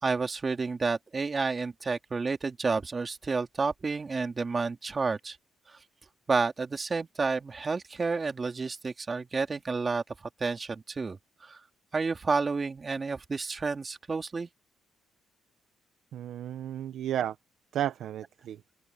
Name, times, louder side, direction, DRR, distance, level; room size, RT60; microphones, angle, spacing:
voice 1, 0.0-5.4 5.7-5.8 6.3-10.0 10.4-11.6 11.9-14.5, right 4 dB, 30° right, 3.2 m, -30 dB
voice 2, 16.1-17.4 17.7-18.6, right 11 dB, 75° right, 0.9 m, -33 dB
cardioid pair, 90°, 0 cm